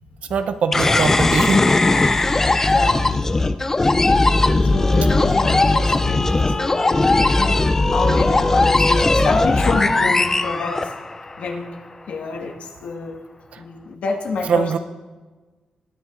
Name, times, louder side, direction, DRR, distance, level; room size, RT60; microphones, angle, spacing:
voice 1, 0.3-1.7 13.5-13.6 14.4-14.8, right 6 dB, 70° right, 9 dB, 0.7 m, -22 dB
sound 1, 0.7-11.3, left 2 dB, 20° left, 0.5 m, -18 dB
voice 2, 2.6-3.3 4.4-10.9 11.4-11.7 12.1-13.2 13.6-14.6, left 4 dB, 80° left, 1 dB, 1.6 m, -28 dB
20.5 x 9.7 x 2.5 m, 1.3 s
wide cardioid pair, 130°, 2 cm